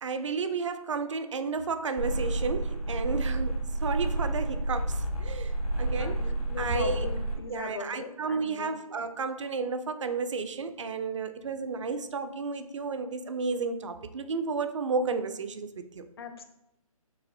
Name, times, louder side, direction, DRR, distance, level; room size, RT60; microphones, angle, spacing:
voice 1, 0.0-5.5 5.8-7.1 7.5-16.0, right 4 dB, 55° right, 0.5 m, -32 dB
sound 1, 2.0-7.4, right 2 dB, 75° left, 1.0 m, -30 dB
voice 2, 6.0-8.7 16.2-16.4, left 5 dB, 40° left, 0.5 m, -39 dB
7.1 x 2.6 x 2.6 m
hypercardioid pair, 160°, 19 cm